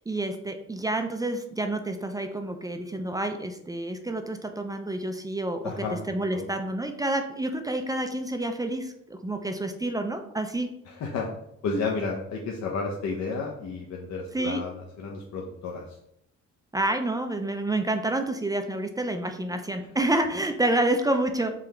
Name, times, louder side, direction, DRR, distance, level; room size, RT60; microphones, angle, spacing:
voice 1, 0.0-10.7 14.3-14.6 16.7-21.5, right 1 dB, 15° right, 6 dB, 0.3 m, -28 dB
voice 2, 5.6-6.0 6.3-6.4 11.0-11.3 11.6-14.7 15.0-15.8, left 4 dB, 65° left, 0 dB, 0.6 m, -31 dB
3.8 x 2.8 x 3.2 m, 0.77 s
cardioid pair, 90°, 30 cm